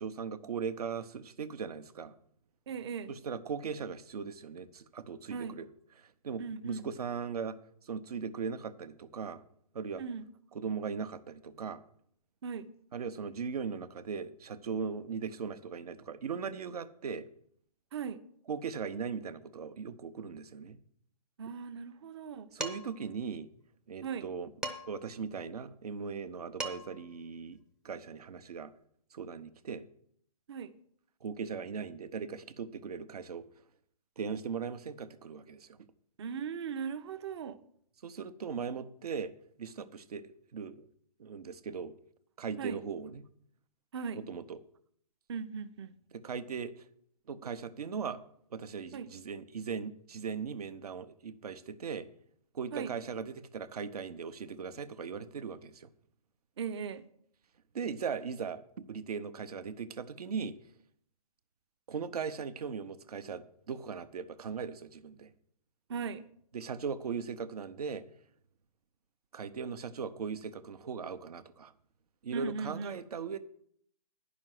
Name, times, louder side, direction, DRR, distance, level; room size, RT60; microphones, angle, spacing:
voice 1, 0.0-2.1 3.1-5.7 6.0-9.4 9.7-10.0 10.5-11.8 12.9-17.3 18.5-20.8 22.5-23.5 23.9-24.5 24.9-27.6 27.8-28.7 29.1-29.8 31.2-33.5 34.2-35.8 38.0-39.3 39.6-40.9 41.2-41.9 42.4-43.3 44.2-44.6 46.1-46.7 47.3-48.2 48.5-52.1 52.5-55.9 57.7-58.6 58.9-60.6 61.9-65.3 66.5-68.0 69.3-71.7 72.2-73.4, right 6 dB, 70° right, 12 dB, 0.9 m, -39 dB
voice 2, 2.7-3.1 5.3-5.6 6.4-6.9 10.0-10.2 12.4-12.7 17.9-18.2 21.4-22.5 24.0-24.3 30.5-30.7 36.2-37.6 42.6-42.8 43.9-44.2 45.3-45.9 48.9-49.1 52.7-52.9 56.6-57.1 65.9-66.3 72.3-73.0, right 6 dB, 45° right, 12 dB, 0.8 m, -38 dB
Dishes pots and pans, 22.6-23.0 24.6-25.1 26.3-26.4 26.6-27.1, right 1 dB, 5° right, 0.5 m, -39 dB
10.0 x 6.1 x 7.7 m, 0.66 s
hypercardioid pair, 155°, 20 cm